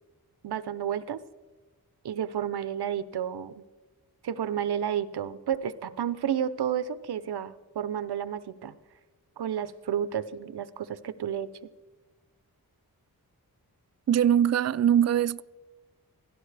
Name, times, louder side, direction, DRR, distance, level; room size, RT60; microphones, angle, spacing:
voice 1, 0.4-1.2 2.0-3.6 4.2-8.8 9.4-11.5, right 9 dB, 80° right, 0.7 m, -31 dB
voice 2, 14.1-15.4, right 9 dB, 45° right, 0.4 m, -22 dB
17.0 x 16.0 x 3.3 m
cardioid pair, 50°, 38 cm